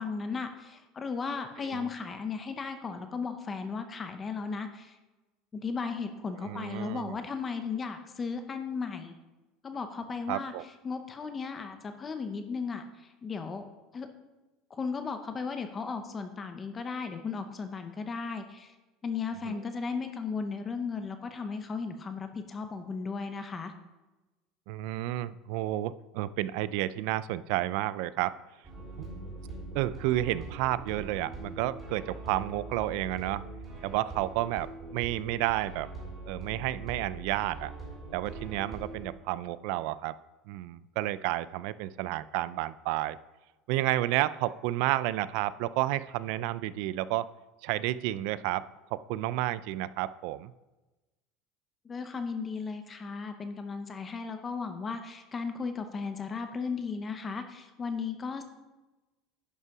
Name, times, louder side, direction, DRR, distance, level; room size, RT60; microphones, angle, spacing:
voice 1, 0.0-5.0 5.5-9.1 9.6-10.5 10.8-13.6 13.9-14.1 14.7-18.7 19.0-23.7 51.8-58.4, left 5 dB, 20° left, 7 dB, 0.6 m, -35 dB
voice 2, 6.4-7.2 10.3-10.6 19.5-19.6 24.7-28.3 29.7-33.4 33.8-35.9 36.3-37.7 38.1-40.1 40.5-43.2 43.7-47.3 47.6-50.5, right 15 dB, 65° right, 17 dB, 0.3 m, -31 dB
sound 1, 28.6-39.1, right 2 dB, 15° right, 3.1 m, -42 dB
11.0 x 5.4 x 4.8 m, 1.1 s
cardioid pair, 165°, 0 cm